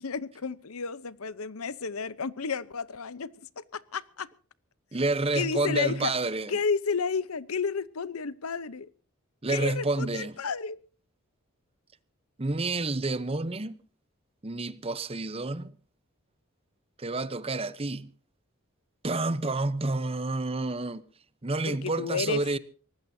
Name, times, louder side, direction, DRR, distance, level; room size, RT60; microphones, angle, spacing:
voice 1, 0.0-4.3 5.3-6.1 6.5-8.9 9.5-10.8 21.6-22.4, left 5 dB, 85° left, 0.9 m, -32 dB
voice 2, 4.9-6.6 9.4-10.4 12.4-13.8 14.4-15.8 17.0-18.1 19.0-21.0 21.4-22.6, right 2 dB, 25° right, 0.8 m, -29 dB
23.5 x 19.0 x 2.8 m
head